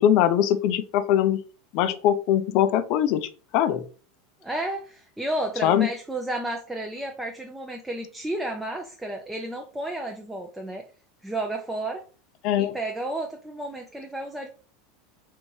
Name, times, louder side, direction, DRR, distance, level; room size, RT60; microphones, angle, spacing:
voice 1, 0.0-1.4 1.7-3.8 5.6-5.9 12.4-12.8, left 10 dB, 55° left, 11 dB, 0.4 m, -22 dB
voice 2, 4.4-10.8 11.2-12.0 12.6-14.5, right 1 dB, 5° right, 1 dB, 0.5 m, -32 dB
3.4 x 2.7 x 3.1 m, 0.38 s
supercardioid pair, 115°, 0 cm